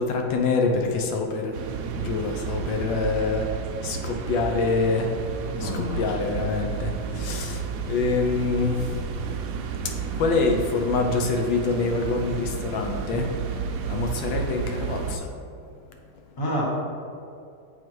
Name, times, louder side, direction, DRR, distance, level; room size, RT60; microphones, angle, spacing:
voice 1, 0.0-1.6 2.0-3.5 3.8-5.1 5.6-8.9 9.8-13.3 13.9-15.3, left 4 dB, 80° left, 3 dB, 1.3 m, -26 dB
sound 1, 1.5-15.2, right 6 dB, 85° right, 0.7 m, -31 dB
voice 2, 5.5-6.2 16.4-16.6, equal, 15° left, -5 dB, 1.0 m, -29 dB
6.9 x 4.3 x 4.5 m, 2.4 s
omnidirectional pair, 2.1 m